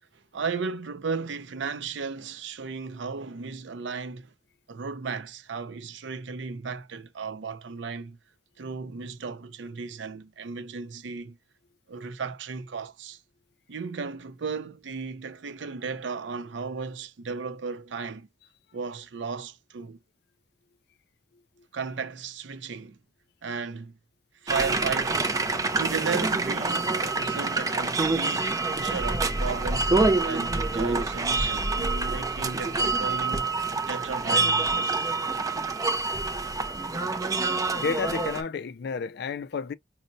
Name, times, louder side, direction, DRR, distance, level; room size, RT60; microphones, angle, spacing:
voice 1, 0.1-4.3 4.7-8.2 8.6-11.4 11.9-13.2 13.7-18.3 18.7-20.0 21.7-23.0 23.4-24.0 24.4-25.4 25.8-33.5 33.9-35.1, right 5 dB, 75° right, 0.5 m, -35 dB
sound 1, 24.5-38.4, right 3 dB, 20° right, 0.4 m, -26 dB
voice 2, 37.8-39.7, left 5 dB, 60° left, 0.4 m, -31 dB
5.3 x 2.1 x 2.5 m
head